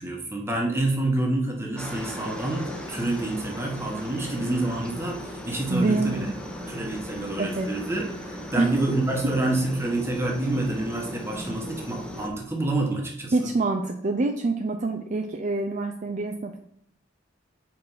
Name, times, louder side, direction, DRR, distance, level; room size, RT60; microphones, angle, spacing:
voice 1, 0.0-6.2 6.7-13.3, right 2 dB, 15° right, 0 dB, 1.2 m, -28 dB
Aircraft, 1.8-12.3, left 1 dB, 5° left, 0.8 m, -37 dB
voice 2, 5.7-6.4 7.1-7.7 8.6-8.8 13.3-16.6, right 3 dB, 40° right, 4 dB, 0.4 m, -26 dB
5.1 x 4.6 x 5.5 m, 0.68 s
head